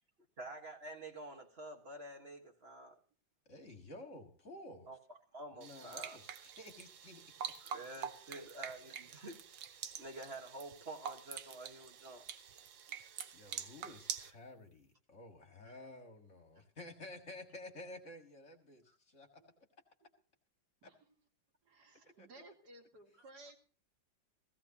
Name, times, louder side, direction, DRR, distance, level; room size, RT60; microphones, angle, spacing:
voice 1, 0.4-3.0 4.9-6.2 7.6-9.4 10.0-12.2, right 2 dB, 35° right, 1.6 m, -49 dB
voice 2, 3.5-4.9 5.5-7.2 13.3-19.7 22.2-22.4, left 1 dB, 40° left, 2.1 m, -52 dB
sound 1, 5.6-14.3, right 8 dB, 75° right, 1.7 m, -46 dB
voice 3, 12.9-13.5 19.4-19.5 20.8-21.0 21.6-23.6, right 2 dB, 55° right, 2.6 m, -58 dB
17.0 x 16.5 x 2.9 m
omnidirectional pair, 2.1 m